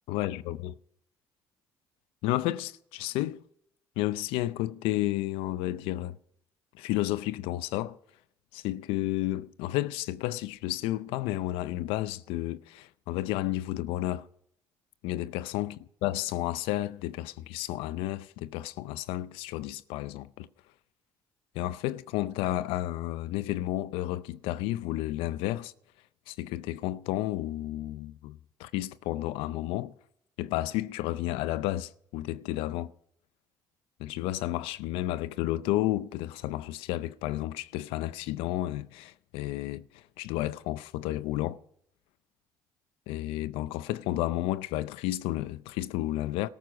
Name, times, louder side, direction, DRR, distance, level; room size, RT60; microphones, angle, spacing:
voice 1, 0.1-0.7 2.2-3.4 4.0-6.2 6.8-8.0 8.5-14.3 15.0-15.7 16.0-20.5 21.5-25.7 26.3-29.9 30.4-32.9 34.0-41.6 43.1-46.5, left 15 dB, 80° left, 0.5 m, -32 dB
14.0 x 13.0 x 6.2 m
supercardioid pair, 70°, 9 cm